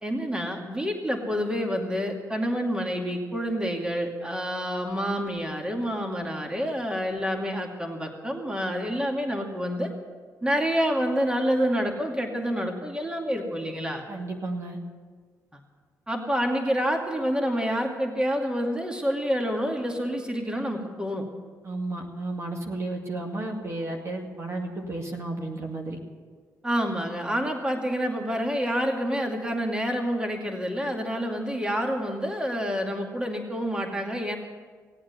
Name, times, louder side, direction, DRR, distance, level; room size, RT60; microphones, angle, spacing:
voice 1, 0.0-9.9 10.4-14.1 16.1-21.3 26.6-34.4, equal, 15° right, 2 dB, 2.4 m, -28 dB
voice 2, 14.1-14.8 21.6-26.0, right 2 dB, 40° right, 1 dB, 2.3 m, -33 dB
17.5 x 8.7 x 8.2 m, 1.5 s
supercardioid pair, 65°, 7 cm